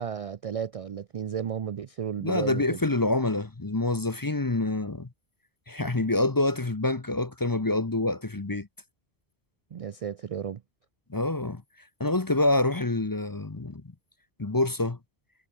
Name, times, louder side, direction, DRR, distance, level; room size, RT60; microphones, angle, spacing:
voice 1, 0.0-2.8 9.7-10.6, right 8 dB, 50° right, 0.4 m, -33 dB
voice 2, 2.2-5.1 5.7-8.7 11.1-11.6 12.0-13.8 14.4-15.0, left 2 dB, 20° left, 0.8 m, -26 dB
omnidirectional pair, 1.0 m